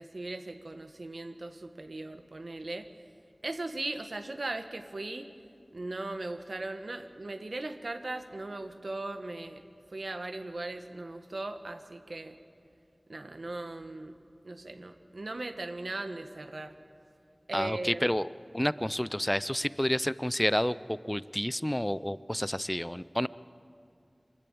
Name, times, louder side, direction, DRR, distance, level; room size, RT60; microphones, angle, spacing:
voice 1, 0.0-2.9 3.4-5.3 5.7-9.6 9.9-12.4 13.1-14.1 14.4-16.7 17.5-18.2, right 2 dB, 80° right, 8 dB, 1.2 m, -38 dB
voice 2, 17.5-18.3 18.5-23.3, equal, 15° left, 18 dB, 0.5 m, -30 dB
24.0 x 14.0 x 8.7 m, 2.4 s
wide cardioid pair, 40°, 0 cm